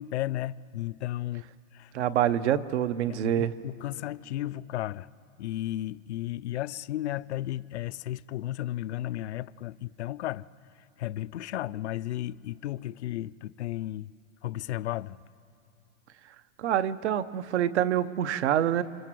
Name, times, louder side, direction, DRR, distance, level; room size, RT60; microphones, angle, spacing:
voice 1, 0.0-1.5 1.7-1.9 3.1-5.1 5.4-10.4 11.0-14.1 14.4-15.2, left 14 dB, 50° left, 0.6 m, -34 dB
voice 2, 1.9-3.5 16.6-18.8, right 10 dB, 50° right, 1.1 m, -26 dB
29.5 x 25.5 x 7.7 m
hypercardioid pair, 165°, 42 cm